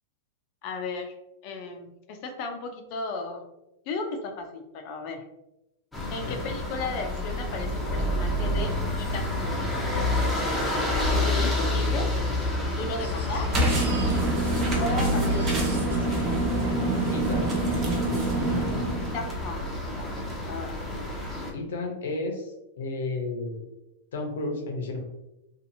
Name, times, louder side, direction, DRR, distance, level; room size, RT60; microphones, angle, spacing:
voice 1, 0.6-1.1 1.4-3.4 3.9-5.2 6.1-9.7 11.1-12.1 12.7-13.6 14.8-15.9 19.0-20.7, left 3 dB, 50° left, 5 dB, 0.5 m, -35 dB
sound 1, 5.9-21.5, left 1 dB, 5° left, 0.7 m, -29 dB
Crying sobbing, 10.6-10.7 10.9-11.0 11.8-14.7 14.9-17.5 18.3-18.4 18.8-18.9, right 4 dB, 90° right, 0.6 m, -45 dB
sound 2, 13.5-19.3, right 2 dB, 35° right, 0.7 m, -26 dB
voice 2, 17.1-17.5 18.0-19.1 21.5-23.6 24.1-25.0, left 2 dB, 85° left, 2 dB, 0.7 m, -33 dB
2.7 x 2.5 x 2.6 m, 0.92 s
supercardioid pair, 140°, 0 cm